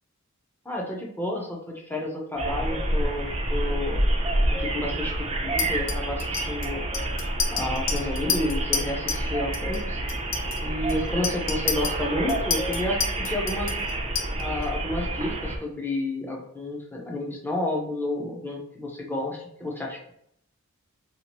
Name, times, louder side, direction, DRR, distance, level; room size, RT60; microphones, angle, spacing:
voice 1, 0.6-4.0 4.5-6.8 7.5-10.0 10.6-13.8 14.4-20.1, left 1 dB, 10° left, -1 dB, 0.6 m, -31 dB
sound 1, 2.4-15.6, right 1 dB, 30° right, 0.5 m, -28 dB
Chink clink, 5.6-9.3 9.5-9.8 10.1-14.6, left 6 dB, 70° left, 0.5 m, -31 dB
2.8 x 2.5 x 2.9 m, 0.70 s
head